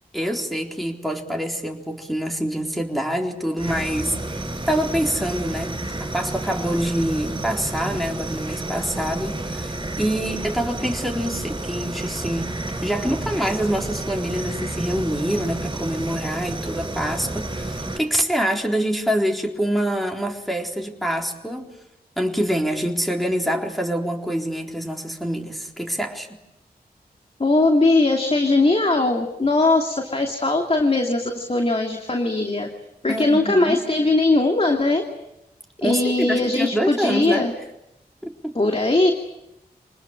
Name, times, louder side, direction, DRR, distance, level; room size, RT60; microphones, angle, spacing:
voice 1, 0.1-4.2 4.7-5.7 6.0-12.6 12.8-21.7 22.2-26.3 33.1-33.8 35.8-37.5 38.2-38.6, equal, ahead, 0 dB, 3.9 m, -25 dB
sound 1, 3.6-18.0, right 2 dB, 30° right, 4.9 m, -30 dB
voice 2, 27.4-32.7 33.0-35.0 35.8-37.5 38.5-39.1, left 2 dB, 35° left, 3 dB, 2.7 m, -20 dB
27.0 x 20.0 x 8.9 m, 0.88 s
cardioid pair, 60°, 17 cm